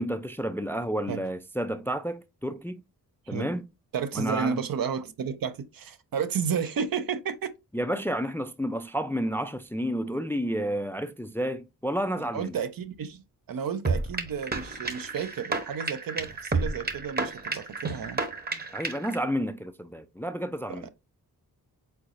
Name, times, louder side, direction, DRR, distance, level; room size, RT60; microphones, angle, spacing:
voice 1, 0.0-2.8 3.3-3.7 4.1-4.6 7.7-12.6 18.7-20.9, equal, 5° left, 0.4 m, -30 dB
voice 2, 3.9-7.5 12.2-18.2 20.8-20.9, right 7 dB, 65° right, 0.7 m, -32 dB
sound 1, 13.8-19.2, right 3 dB, 25° right, 1.0 m, -31 dB
4.5 x 4.0 x 2.5 m
cardioid pair, 70°, 38 cm